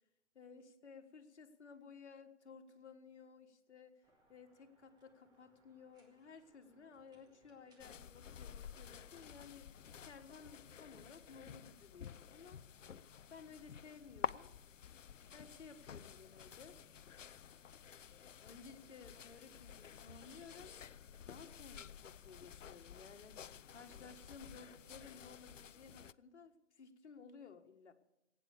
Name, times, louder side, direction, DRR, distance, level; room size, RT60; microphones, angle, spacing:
voice 1, 0.3-4.0 4.3-12.6 13.3-14.5 15.3-16.8 18.4-20.7 21.3-27.9, left 5 dB, 65° left, 6 dB, 1.7 m, -57 dB
sound 1, 4.0-9.4, right 1 dB, 10° right, 2.0 m, -73 dB
sound 2, 7.8-26.1, left 8 dB, 90° left, 0.5 m, -51 dB
16.5 x 9.2 x 6.7 m, 0.88 s
figure-of-eight pair, 130°, 37 cm